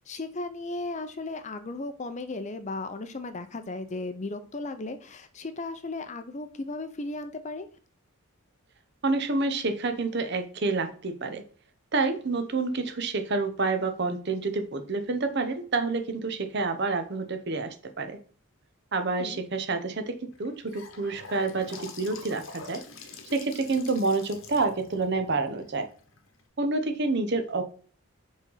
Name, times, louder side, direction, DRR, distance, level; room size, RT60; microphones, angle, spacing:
voice 1, 0.1-7.7 19.2-19.4, left 2 dB, 30° left, 0.6 m, -36 dB
voice 2, 9.0-11.4 11.9-18.2 18.9-22.8 23.3-25.9 26.6-27.6, right 3 dB, 50° right, 0.8 m, -28 dB
Gurgling / Sink (filling or washing) / Bathtub (filling or washing), 20.3-26.4, left 4 dB, 60° left, 1.0 m, -46 dB
5.1 x 4.0 x 5.6 m
head